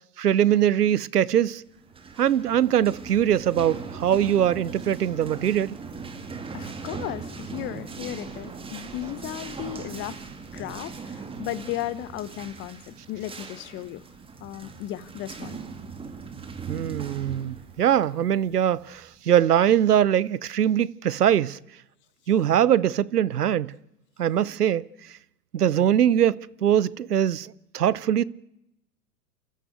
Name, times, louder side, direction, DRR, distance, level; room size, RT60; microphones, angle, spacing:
voice 1, 0.2-1.6 2.2-5.8 16.7-21.6 22.3-23.7 24.2-24.8 25.5-28.2, right 10 dB, 70° right, 0.9 m, -22 dB
sound 1, 1.8-19.2, right 5 dB, 10° right, 2.1 m, -39 dB
voice 2, 6.5-14.1 14.4-15.6, left 14 dB, 25° left, 1.0 m, -35 dB
29.5 x 13.5 x 8.1 m
figure-of-eight pair, 110°, 48 cm